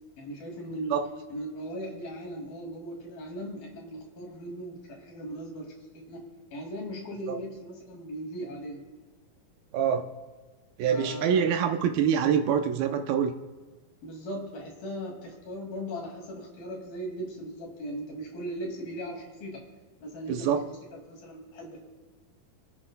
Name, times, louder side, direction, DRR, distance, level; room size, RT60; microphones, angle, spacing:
voice 1, 0.2-1.0 1.3-8.8 10.9-11.5 14.0-19.6 20.0-20.5 21.1-21.8, equal, 70° left, -1 dB, 4.0 m, -38 dB
voice 2, 9.7-10.1 10.8-13.3 20.3-20.7, right 8 dB, 80° right, 5 dB, 2.4 m, -25 dB
28.5 x 9.8 x 2.2 m, 1.3 s
omnidirectional pair, 4.4 m